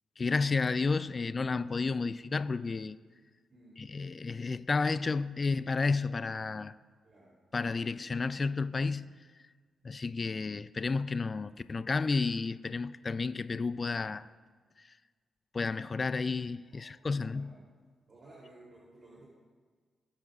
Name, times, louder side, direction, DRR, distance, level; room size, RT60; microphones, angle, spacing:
voice 1, 0.2-3.0 3.8-6.7 7.5-9.2 9.8-14.3 14.8-15.0 15.5-17.5, left 4 dB, 40° left, 0.4 m, -31 dB
voice 2, 3.5-3.9 7.0-7.4 16.7-17.6 18.1-19.3, right 1 dB, 55° right, 3.0 m, -56 dB
20.5 x 8.7 x 2.4 m
supercardioid pair, 45°, 0 cm